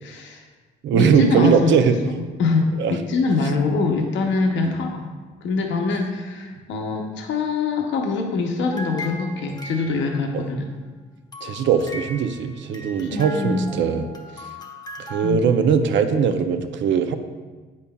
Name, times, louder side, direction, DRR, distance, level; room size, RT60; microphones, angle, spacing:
voice 1, 0.0-0.4 0.9-5.1 5.4-10.7 13.0-13.7 15.2-15.4 16.3-16.4, left 4 dB, 70° left, 2 dB, 0.7 m, -24 dB
voice 2, 0.8-2.0 2.8-3.0 4.6-4.7 10.3-10.4 11.4-14.1 15.0-17.2, right 7 dB, 70° right, 8 dB, 0.5 m, -20 dB
sound 1, 8.7-10.5 11.3-15.3, left 1 dB, 20° left, 0.7 m, -38 dB
8.4 x 5.3 x 2.3 m, 1.4 s
cardioid pair, 90°, 20 cm